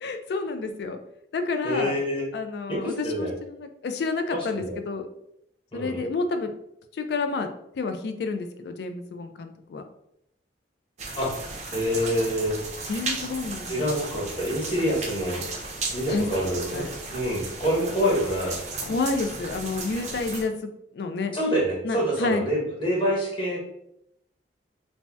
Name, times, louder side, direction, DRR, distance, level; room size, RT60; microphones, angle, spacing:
voice 1, 0.0-1.0 1.3-2.0 2.3-5.1 5.7-6.5 6.9-7.5 7.8-9.8 12.9-13.9 16.1-16.3 16.7-16.9 18.8-20.5 20.9-21.3 21.8-22.4, left 3 dB, 60° left, 7 dB, 0.3 m, -29 dB
voice 2, 1.6-2.2 2.7-3.3 4.3-4.8 5.7-6.0 11.1-11.5 11.7-12.6 13.7-15.4 15.9-16.8 17.1-18.6 21.3-23.6, equal, 25° left, -5 dB, 0.9 m, -26 dB
sound 1, 11.0-20.4, right 3 dB, 40° right, 0.5 m, -35 dB
2.6 x 2.1 x 3.3 m, 0.78 s
head